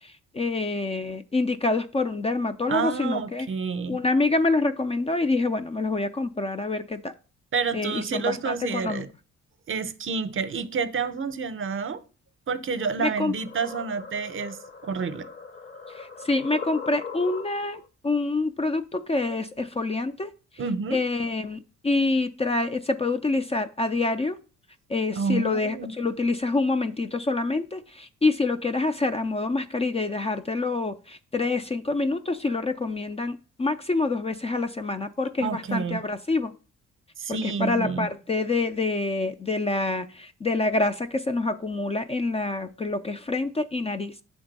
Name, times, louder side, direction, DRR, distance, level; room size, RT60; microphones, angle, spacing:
voice 1, 0.0-3.5 3.9-7.1 7.7-9.1 13.0-13.3 15.9-20.3 20.9-24.4 24.9-36.5 37.3-44.1, left 3 dB, 20° left, 0.4 m, -26 dB
voice 2, 2.7-4.0 7.5-9.1 9.7-12.0 12.5-14.6 14.8-15.3 20.6-21.0 25.2-25.9 35.4-36.0 37.2-38.1, right 5 dB, 45° right, 0.7 m, -29 dB
sound 1, 12.8-17.9, left 5 dB, 35° left, 0.8 m, -40 dB
7.9 x 3.5 x 5.3 m
cardioid pair, 90°, 30 cm